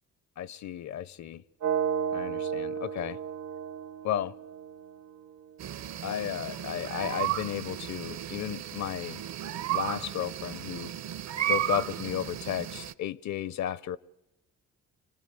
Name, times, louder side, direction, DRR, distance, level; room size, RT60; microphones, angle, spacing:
voice 1, 0.4-1.4 2.1-3.2 4.0-4.4 6.0-9.2 9.7-10.9 11.5-14.0, left 11 dB, 65° left, 0.7 m, -33 dB
sound 1, 1.6-5.6, right 7 dB, 85° right, 1.5 m, -33 dB
sound 2, 5.6-12.9, right 11 dB, 60° right, 0.9 m, -34 dB
27.0 x 18.0 x 8.2 m
cardioid pair, 90°, 30 cm